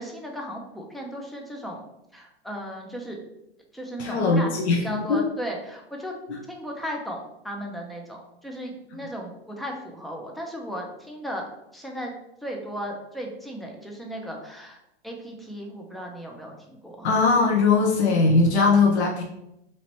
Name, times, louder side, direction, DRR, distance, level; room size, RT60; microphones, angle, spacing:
voice 1, 0.0-1.8 2.1-3.2 3.7-6.2 6.5-11.4 11.7-12.1 12.4-14.8 15.0-17.1, equal, ahead, 1 dB, 0.4 m, -36 dB
voice 2, 4.0-5.2 17.0-19.2, left 4 dB, 80° left, 0 dB, 0.8 m, -20 dB
3.0 x 2.9 x 4.3 m, 0.84 s
hypercardioid pair, 130°, 32 cm